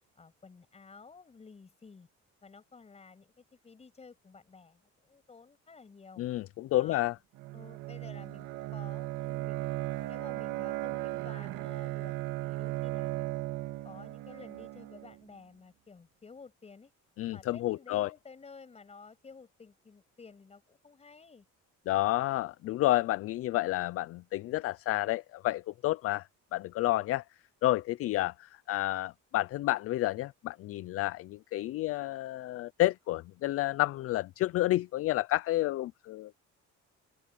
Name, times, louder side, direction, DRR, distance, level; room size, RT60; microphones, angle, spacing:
voice 1, 0.2-2.1 2.4-6.2 6.8-7.0 7.5-9.8 10.1-12.2 12.4-13.4 13.8-16.9 17.3-21.5, left 4 dB, 20° left, 7.4 m, -53 dB
voice 2, 6.2-7.1 17.2-18.1 21.9-27.2 27.6-36.3, left 16 dB, 50° left, 0.4 m, -30 dB
Bowed string instrument, 7.3-15.2, right 17 dB, 90° right, 2.5 m, -36 dB
open air
cardioid pair, 170°, 31 cm